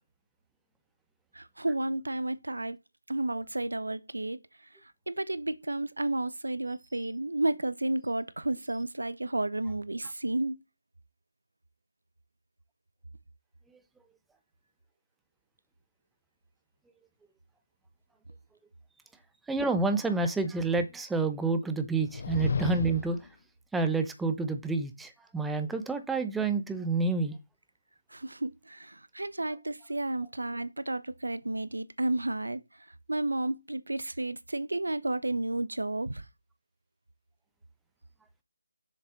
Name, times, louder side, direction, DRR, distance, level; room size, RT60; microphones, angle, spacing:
voice 1, 1.3-2.8 3.1-4.4 5.1-10.6 28.1-32.6 33.1-36.2, right 2 dB, 80° right, 0.9 m, -32 dB
voice 2, 19.5-23.2 23.7-27.4, right 3 dB, 5° right, 0.7 m, -29 dB
sound 1, 21.9-23.3, left 5 dB, 45° left, 0.9 m, -32 dB
7.0 x 6.5 x 3.7 m
figure-of-eight pair, 155°, 0 cm